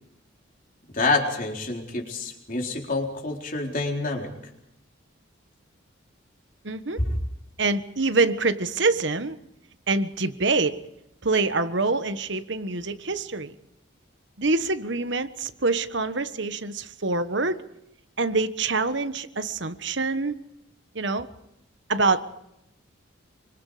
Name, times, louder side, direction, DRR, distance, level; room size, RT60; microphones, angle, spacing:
voice 1, 0.9-4.3 7.0-7.2, left 2 dB, 40° left, 2 dB, 4.1 m, -27 dB
voice 2, 6.6-7.0 7.6-9.4 9.9-10.8 11.2-13.5 14.4-17.6 18.2-20.4 20.9-21.3 21.9-22.2, right 3 dB, 60° right, 11 dB, 1.3 m, -25 dB
26.0 x 25.0 x 5.0 m, 0.80 s
head